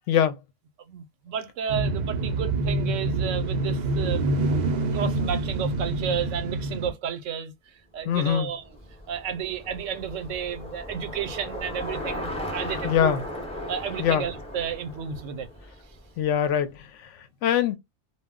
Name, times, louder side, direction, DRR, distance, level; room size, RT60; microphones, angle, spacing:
voice 1, 0.1-0.4 8.0-8.5 12.8-13.2 14.0-14.2 16.2-17.8, left 9 dB, 75° left, 0.9 m, -23 dB
voice 2, 0.9-4.3 4.9-8.6 9.1-13.2 13.7-15.5, right 7 dB, 80° right, 0.9 m, -32 dB
sound 1, 1.7-6.9, right 2 dB, 60° right, 0.4 m, -26 dB
Bicycle, 8.2-16.5, left 1 dB, 5° left, 0.5 m, -37 dB
2.3 x 2.0 x 3.5 m
omnidirectional pair, 1.3 m